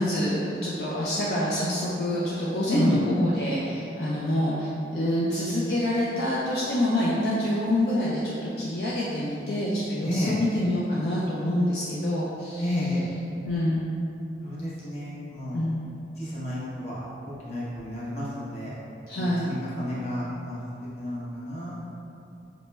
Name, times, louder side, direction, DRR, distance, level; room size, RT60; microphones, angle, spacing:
voice 1, 0.0-13.0 13.4-13.9 15.5-15.8 19.1-19.5, left 1 dB, 60° left, -7 dB, 0.4 m, -26 dB
voice 2, 10.0-10.3 12.6-13.0 14.4-15.6 16.2-18.7 19.1-20.6 21.0-21.7, left 1 dB, 35° left, -8 dB, 0.8 m, -31 dB
4.2 x 2.9 x 2.2 m, 2.7 s
head